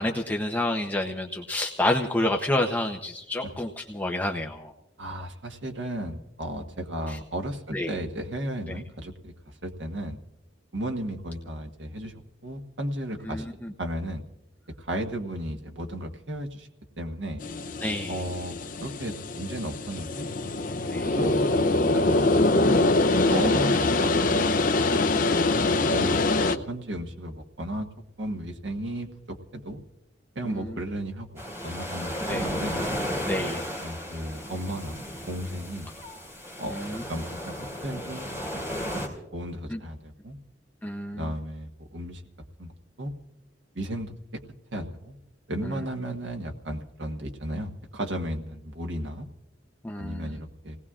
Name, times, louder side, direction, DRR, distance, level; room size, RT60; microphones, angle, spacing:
voice 1, 0.0-4.7 7.1-7.2 7.7-7.9 13.3-13.4 17.8-18.2 20.9-21.1 30.4-30.7 32.3-32.4 33.3-33.6 36.7-37.0 39.7-39.8 40.8-41.3 45.6-45.8 49.8-50.4, left 1 dB, 10° left, 1 dB, 0.7 m, -29 dB
voice 2, 5.0-10.2 10.7-13.5 13.8-14.2 14.8-16.7 17.0-17.4 18.1-20.3 21.1-21.5 21.9-22.8 23.3-24.5 25.9-27.9 28.2-29.8 30.3-32.8 33.8-35.9 36.6-38.6 38.9-39.0 39.3-40.4 41.1-42.2 42.6-42.7 43.0-43.1 43.7-44.4 44.7-45.2 45.5-49.3 50.0-50.8, right 1 dB, 75° right, 3 dB, 1.3 m, -34 dB
sound 1, 17.4-26.6, left 2 dB, 45° left, 0.6 m, -24 dB
sound 2, 31.4-39.1, equal, 15° right, 3.9 m, -34 dB
30.0 x 18.5 x 2.4 m, 0.87 s
head